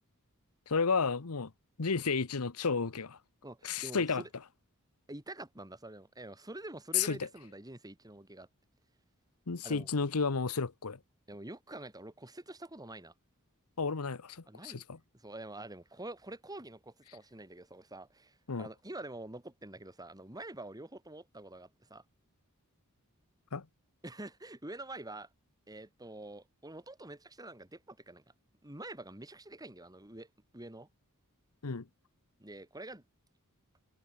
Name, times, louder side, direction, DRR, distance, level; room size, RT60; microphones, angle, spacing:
voice 1, 0.7-1.5 1.8-3.2 3.6-4.2 6.9-7.2 9.5-11.0 13.8-15.0 18.5-18.7 23.5-23.6 31.6-31.8, left 5 dB, 90° left, 1.0 m, -32 dB
voice 2, 3.4-4.3 5.1-8.5 9.6-9.9 11.3-13.1 14.5-14.8 15.1-22.0 24.0-25.3 25.7-28.2 28.6-30.3 30.5-30.9 32.4-33.0, right 2 dB, 15° right, 3.7 m, -46 dB
head